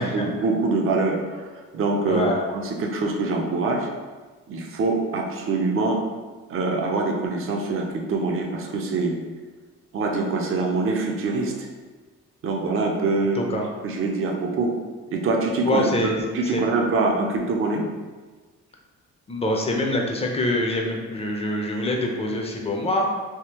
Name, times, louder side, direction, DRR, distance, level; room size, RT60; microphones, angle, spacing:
voice 1, 0.0-3.9 4.5-6.0 6.5-9.2 9.9-11.7 12.4-13.4 13.8-14.7 15.1-17.8, right 3 dB, 45° right, 1 dB, 0.6 m, -24 dB
voice 2, 2.1-2.4 13.4-13.7 15.6-16.1 16.4-16.6 19.3-23.1, left 1 dB, 20° left, 0 dB, 0.6 m, -25 dB
3.5 x 2.7 x 2.9 m, 1.4 s
cardioid pair, 90°, 30 cm